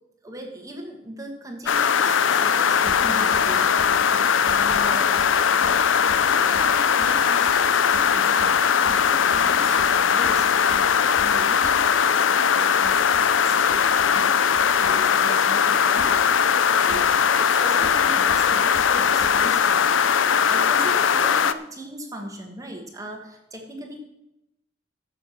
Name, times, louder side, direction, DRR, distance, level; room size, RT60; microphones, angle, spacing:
voice 1, 0.2-5.2 6.2-24.0, right 1 dB, 20° right, 2 dB, 1.6 m, -39 dB
sound 1, 1.7-21.5, left 7 dB, 80° left, 0.5 m, -20 dB
sound 2, 2.7-15.4 15.7-20.1, left 1 dB, 55° left, 1.7 m, -42 dB
14.5 x 6.8 x 5.9 m, 0.88 s
head